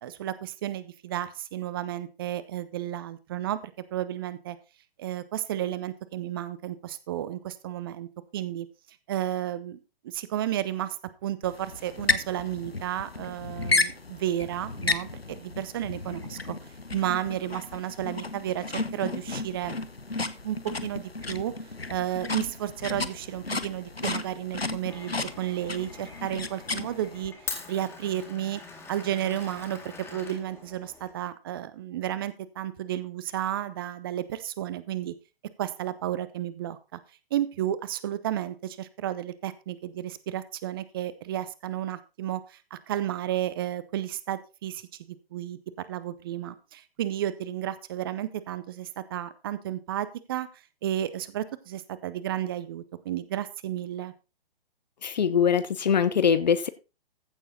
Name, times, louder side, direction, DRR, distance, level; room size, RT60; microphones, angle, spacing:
voice 1, 0.0-3.6 3.9-4.6 5.0-8.7 9.1-9.8 10.0-11.0 11.2-16.6 16.9-19.8 20.4-21.5 21.9-27.3 27.7-28.6 28.9-35.1 35.6-37.0 37.3-50.5 50.8-54.1, right 12 dB, 25° right, 15 dB, 0.7 m, -32 dB
sound 1, 11.4-27.3, left 3 dB, 85° left, 1.1 m, -33 dB
Glass, 24.9-31.1, left 4 dB, 10° left, 2.1 m, -43 dB
voice 2, 55.0-56.7, left 7 dB, 45° left, 14 dB, 0.9 m, -23 dB
14.5 x 7.0 x 4.1 m, 0.30 s
figure-of-eight pair, 130°, 30 cm